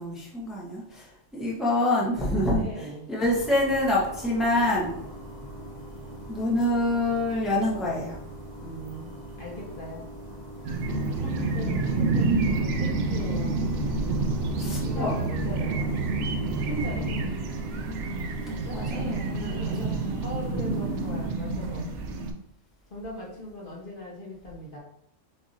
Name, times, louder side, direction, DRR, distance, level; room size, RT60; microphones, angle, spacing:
voice 1, 0.0-5.0 6.3-8.2 14.5-15.1 18.7-19.5 19.8-20.0, left 1 dB, ahead, -5 dB, 0.9 m, -26 dB
voice 2, 2.5-3.3 8.6-10.1 11.2-13.6 14.8-16.0 16.6-17.1 18.5-18.8 19.3-21.9 22.9-24.8, equal, 45° left, -3 dB, 1.0 m, -39 dB
sound 1, 3.2-21.3, right 1 dB, 40° right, 0.9 m, -42 dB
sound 2, 10.6-22.3, right 3 dB, 70° right, 0.9 m, -29 dB
sound 3, 10.9-17.3, right 2 dB, 75° left, 1.5 m, -31 dB
6.4 x 2.7 x 2.6 m, 0.73 s
omnidirectional pair, 1.3 m